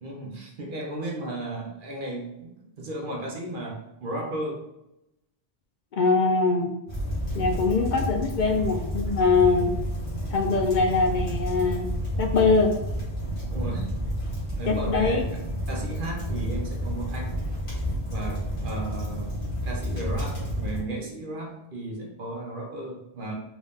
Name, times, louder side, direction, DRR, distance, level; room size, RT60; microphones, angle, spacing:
voice 1, 0.0-4.7 9.5-9.7 13.5-14.0 14.5-17.4 18.1-23.3, right 1 dB, 55° right, 0 dB, 0.9 m, -35 dB
voice 2, 5.9-6.7 7.3-9.7 10.3-11.9 12.2-12.7 14.7-15.2, left 4 dB, 60° left, 4 dB, 0.6 m, -22 dB
sound 1, 6.9-20.8, equal, 30° left, 1.5 m, -30 dB
3.9 x 2.6 x 3.5 m, 0.87 s
omnidirectional pair, 1.1 m